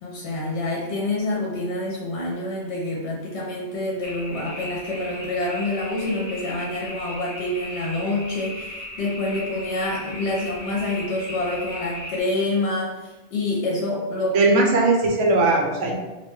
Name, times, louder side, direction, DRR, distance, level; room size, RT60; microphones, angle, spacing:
voice 1, 0.0-14.4, left 2 dB, 70° left, -3 dB, 0.8 m, -27 dB
sound 1, 4.0-12.2, left 1 dB, 35° left, 0.7 m, -37 dB
voice 2, 14.3-15.9, right 2 dB, 85° right, 0 dB, 0.9 m, -19 dB
2.4 x 2.1 x 3.0 m, 1.1 s
omnidirectional pair, 1.2 m